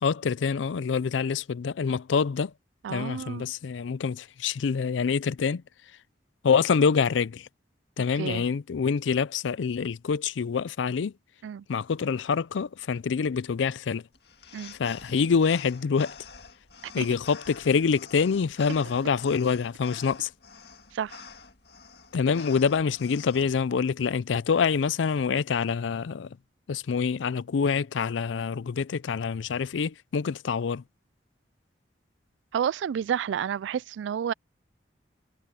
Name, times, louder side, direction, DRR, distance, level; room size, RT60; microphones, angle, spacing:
voice 1, 0.0-2.5 2.9-5.6 6.4-7.5 8.0-11.1 11.7-14.1 14.7-16.2 16.9-20.3 22.1-26.4 26.7-30.8, left 6 dB, 90° left, 0.4 m, -26 dB
voice 2, 2.8-3.4 8.2-8.4 11.4-11.6 14.5-14.7 17.0-17.1 20.9-21.2 32.5-34.3, right 8 dB, 80° right, 0.3 m, -30 dB
sound 1, 14.1-23.4, left 5 dB, 60° left, 2.0 m, -48 dB
head